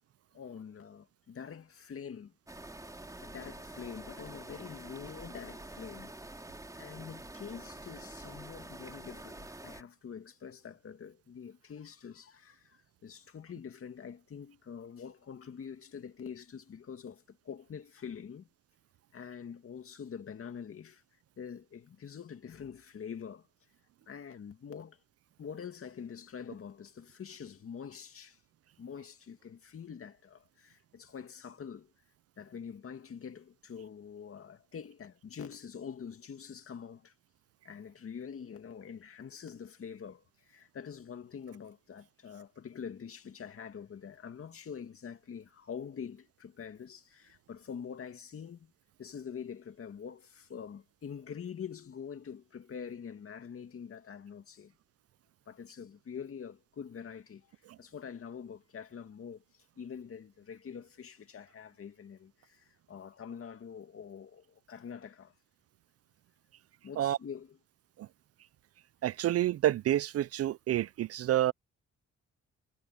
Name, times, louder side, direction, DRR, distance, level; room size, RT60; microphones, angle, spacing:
voice 1, 0.3-2.3 3.2-6.1 6.8-18.5 19.1-21.0 21.4-23.5 24.1-25.0 25.4-28.4 28.8-31.9 32.4-37.1 37.6-48.7 49.0-54.7 55.5-65.3 66.8-67.6, left 7 dB, 45° left, 2.3 m, -45 dB
sound 1, 2.5-9.8, right 2 dB, 10° right, 3.3 m, -47 dB
voice 2, 69.0-71.5, right 13 dB, 55° right, 0.4 m, -28 dB
cardioid pair, 90°, 30 cm